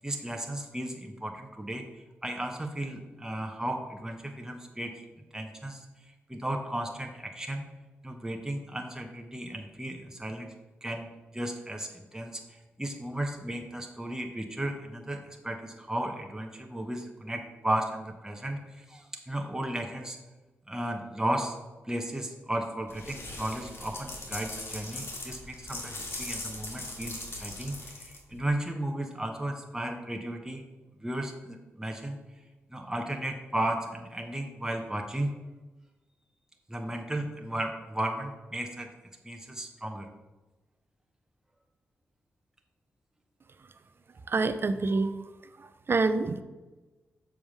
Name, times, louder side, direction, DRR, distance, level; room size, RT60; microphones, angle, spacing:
voice 1, 0.0-5.0 5.3-7.6 8.0-10.5 10.8-20.2 20.7-21.6 21.8-30.6 31.0-32.2 32.7-35.3 36.7-38.9 39.2-40.1, right 1 dB, 10° right, 3 dB, 1.0 m, -35 dB
sound 1, 22.9-28.5, left 2 dB, 50° left, 1.9 m, -40 dB
voice 2, 44.3-45.1 45.9-46.4, right 3 dB, 50° right, 11 dB, 0.6 m, -26 dB
7.1 x 3.5 x 6.3 m, 1.2 s
supercardioid pair, 45°, 5 cm